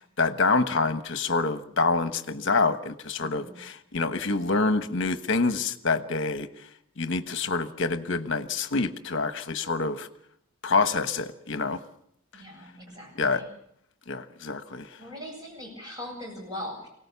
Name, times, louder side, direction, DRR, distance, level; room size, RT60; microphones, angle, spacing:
voice 1, 0.2-6.5 7.0-10.1 10.6-11.8 13.2-13.4 14.1-14.9, left 3 dB, 60° left, 10 dB, 1.2 m, -26 dB
voice 2, 3.2-3.6 12.3-13.5 15.0-16.9, left 1 dB, 20° right, -1 dB, 7.9 m, -40 dB
24.0 x 18.0 x 7.0 m, 0.74 s
head